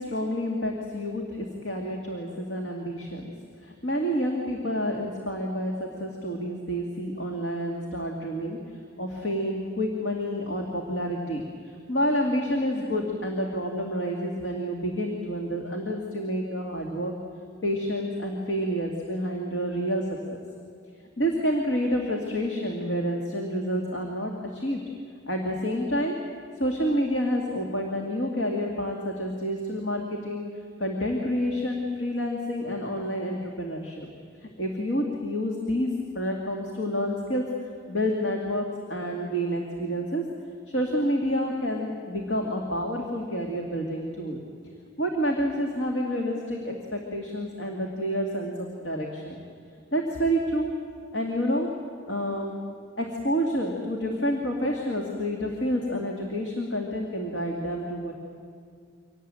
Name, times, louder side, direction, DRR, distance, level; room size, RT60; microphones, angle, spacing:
voice 1, 0.0-3.3 3.6-8.6 9.0-11.4 11.9-17.1 17.6-20.1 21.2-24.8 25.3-26.2 26.6-30.5 30.8-34.1 34.4-37.5 37.9-40.2 40.7-44.4 45.0-49.4 49.9-50.8 51.1-51.7 52.1-52.6 53.0-58.1, equal, 65° left, 1 dB, 2.4 m, -29 dB
25.0 x 18.5 x 9.0 m, 2.3 s
head